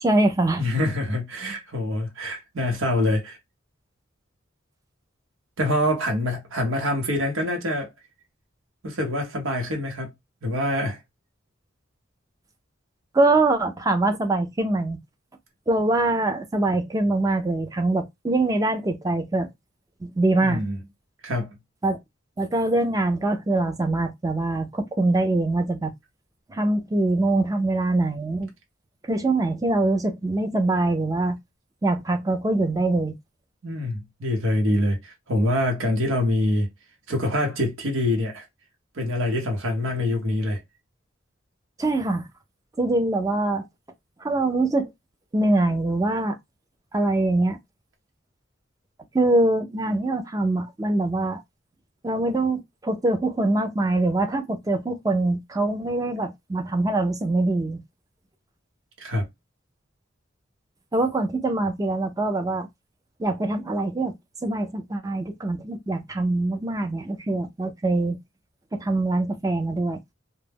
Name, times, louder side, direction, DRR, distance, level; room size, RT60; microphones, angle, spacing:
voice 1, 0.0-0.6 13.1-15.0 15.7-19.5 20.0-20.6 21.8-22.0 22.4-25.9 26.5-28.5 29.0-31.4 31.8-33.1 41.8-42.3 42.8-43.6 44.2-44.9 45.3-46.4 46.9-47.6 49.1-51.4 52.0-57.8 60.9-62.7 63.2-64.2 64.4-68.2 68.7-70.0, right 2 dB, 15° right, 0.4 m, -23 dB
voice 2, 0.6-3.4 5.6-7.9 8.8-10.1 10.4-11.0 20.4-20.8 21.2-21.6 33.6-36.7 37.1-38.5 38.9-40.6 59.0-59.3, left 1 dB, 90° right, 0.8 m, -25 dB
2.2 x 2.0 x 3.3 m
head